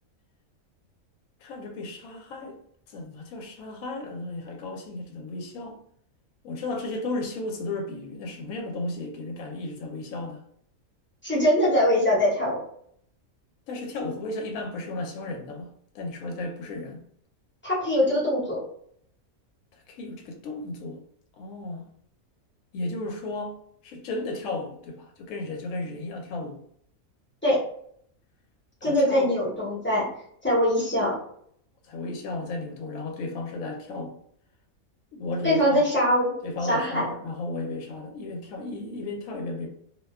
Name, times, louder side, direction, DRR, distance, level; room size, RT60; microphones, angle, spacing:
voice 1, 1.4-2.6 2.9-5.8 6.4-10.4 13.7-17.0 19.9-21.0 21.4-21.9 22.7-23.6 23.8-26.6 28.8-29.3 31.8-34.1 35.1-35.8 36.4-39.7, left 2 dB, 75° left, 2 dB, 1.0 m, -34 dB
voice 2, 11.2-12.6 17.6-18.6 27.4-27.6 28.8-30.0 30.4-31.1 35.4-36.3 36.6-37.1, equal, 10° left, -7 dB, 0.6 m, -22 dB
2.6 x 2.2 x 2.2 m, 0.66 s
omnidirectional pair, 1.5 m